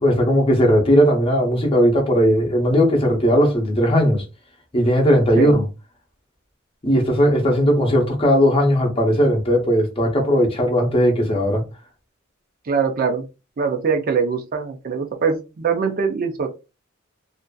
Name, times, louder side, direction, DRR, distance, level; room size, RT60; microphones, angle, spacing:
voice 1, 0.0-4.2 4.7-5.6 6.8-11.6, equal, 25° left, 0.7 m, -17 dB
voice 2, 12.6-13.3 13.6-16.5, right 5 dB, 45° right, 0.4 m, -22 dB
2.5 x 2.4 x 2.2 m
head